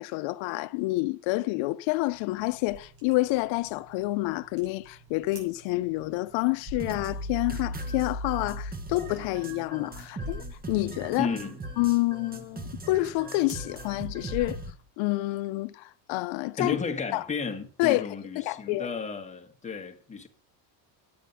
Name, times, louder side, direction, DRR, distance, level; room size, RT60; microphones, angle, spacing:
voice 1, 0.0-11.3 11.8-14.6 15.0-16.8 17.1-17.2 17.8-18.1 18.4-18.9, left 20 dB, 75° left, 0.6 m, -28 dB
sound 1, 2.1-14.8, right 3 dB, 70° right, 6.9 m, -55 dB
sound 2, 6.7-14.7, equal, 20° right, 1.1 m, -37 dB
voice 2, 11.2-11.6 16.6-20.3, left 5 dB, 15° left, 1.5 m, -33 dB
9.4 x 8.7 x 5.5 m
cardioid pair, 145°, 47 cm